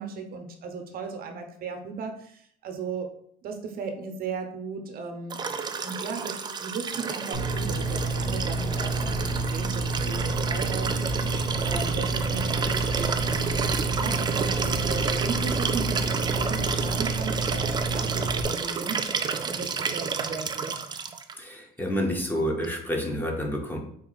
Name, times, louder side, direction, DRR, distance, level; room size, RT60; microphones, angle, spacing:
voice 1, 0.0-3.1 3.4-5.4 5.8-9.2 9.5-11.0 11.6-13.6 13.9-19.0 19.4-20.7, right 4 dB, 60° right, 5 dB, 0.8 m, -36 dB
Liquid, 5.3-21.3 22.6-22.7, right 5 dB, 25° right, 0.4 m, -30 dB
sound 1, 7.3-18.4, right 2 dB, 65° left, 1.2 m, -29 dB
voice 2, 21.3-23.8, equal, 10° left, 0 dB, 1.0 m, -29 dB
4.4 x 2.8 x 3.9 m, 0.65 s
cardioid pair, 110°, 17 cm